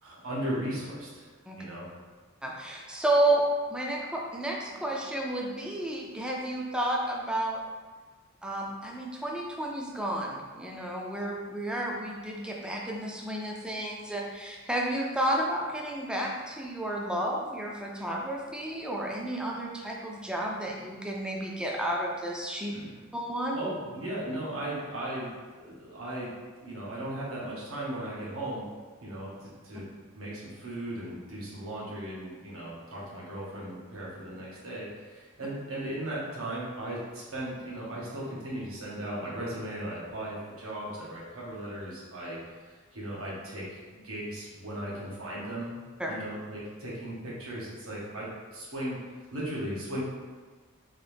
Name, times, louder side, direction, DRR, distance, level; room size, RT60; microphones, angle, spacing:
voice 1, 0.0-1.3 1.6-1.9 22.7-22.9 23.5-26.3 26.6-28.6 29.0-29.9 30.1-42.4 42.6-45.8 46.1-49.0 49.3-50.0, right 1 dB, 85° right, -6 dB, 1.3 m, -37 dB
voice 2, 2.4-3.4 3.7-7.6 8.4-22.7 23.1-23.6 46.0-46.2, right 1 dB, 5° right, -2 dB, 0.4 m, -31 dB
4.0 x 2.7 x 3.4 m, 1.4 s
head